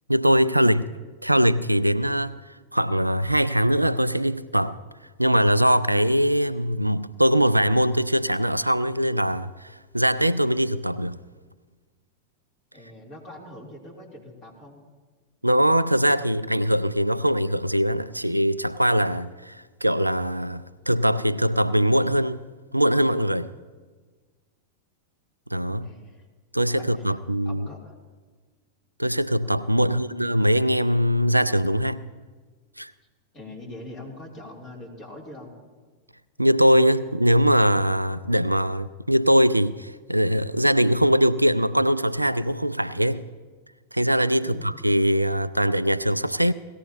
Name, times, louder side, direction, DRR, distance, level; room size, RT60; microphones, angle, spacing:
voice 1, 0.1-0.9 1.2-4.8 5.2-11.2 15.4-22.4 22.7-23.5 25.5-25.9 26.5-27.7 29.0-32.1 32.8-32.9 36.4-43.2 43.9-46.5, equal, 85° right, 0.3 m, -22 dB
voice 2, 12.7-14.8 25.8-26.2 26.7-27.0 27.4-27.9 29.8-30.0 33.3-35.5 44.4-44.7, left 1 dB, 30° left, 3.4 m, -43 dB
18.0 x 15.0 x 2.9 m
figure-of-eight pair, 90°, 0 cm